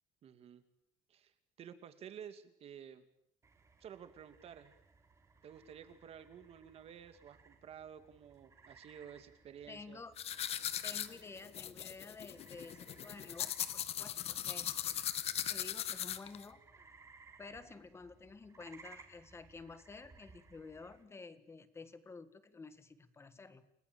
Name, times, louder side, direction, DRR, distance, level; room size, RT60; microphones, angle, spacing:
voice 1, 0.2-0.6 1.1-3.0 3.8-4.7 5.4-10.0 10.9-11.0, right 8 dB, 45° right, 10 dB, 2.6 m, -52 dB
sound 1, 3.4-21.0, right 4 dB, 20° right, 3.6 m, -62 dB
voice 2, 9.7-10.1 10.8-15.0 15.5-16.6 17.4-23.7, left 4 dB, 15° left, 12 dB, 1.8 m, -51 dB
sound 2, 10.2-16.4, left 10 dB, 45° left, 1.3 m, -39 dB
30.0 x 20.0 x 8.9 m, 0.73 s
cardioid pair, 170°, 15 cm